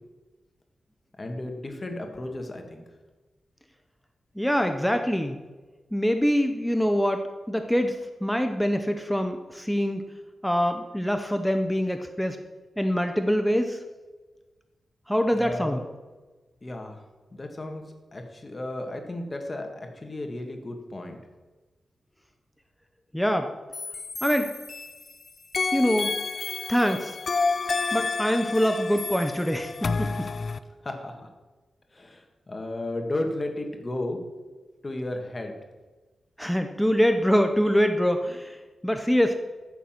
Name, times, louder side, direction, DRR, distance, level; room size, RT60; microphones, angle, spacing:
voice 1, 1.2-2.8 15.3-15.8 16.6-17.0 17.3-17.8 18.1-21.2 30.8-31.3 31.9-34.2 34.8-35.5, left 1 dB, 30° left, 4 dB, 2.0 m, -34 dB
voice 2, 4.4-5.4 5.9-7.2 7.5-10.0 10.4-12.4 12.8-13.8 15.1-15.8 23.1-23.5 24.2-24.5 25.7-26.2 26.7-27.2 27.9-30.3 36.4-38.6 38.8-39.4, equal, 5° left, 6 dB, 0.8 m, -24 dB
sound 1, 23.7-25.1 25.5-30.6, left 4 dB, 50° left, 0.6 m, -30 dB
14.5 x 6.9 x 6.0 m, 1.2 s
wide cardioid pair, 100°, 0 cm